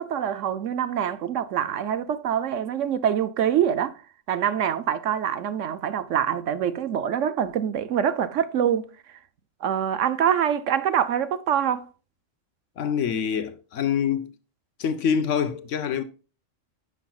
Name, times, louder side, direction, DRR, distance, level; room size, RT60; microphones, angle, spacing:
voice 1, 0.0-3.9 4.3-8.9 9.6-11.9, right 9 dB, 75° right, 1.1 m, -25 dB
voice 2, 12.8-14.3 14.8-16.0, left 7 dB, 70° left, 1.1 m, -25 dB
10.0 x 6.3 x 2.3 m
omnidirectional pair, 1.3 m